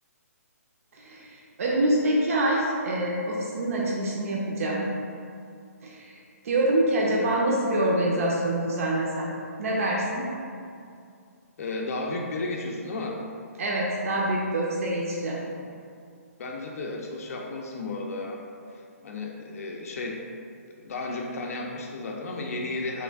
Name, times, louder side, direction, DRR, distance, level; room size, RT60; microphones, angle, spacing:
voice 1, 1.6-4.9 5.8-6.2 6.4-9.3 9.6-10.2 13.6-15.4, right 1 dB, 65° right, -3 dB, 0.5 m, -25 dB
voice 2, 11.6-13.2 16.4-18.4 19.0-20.2 20.8-23.0, left 2 dB, 65° left, 0 dB, 0.4 m, -33 dB
3.0 x 2.4 x 3.3 m, 2.4 s
hypercardioid pair, 155°, 8 cm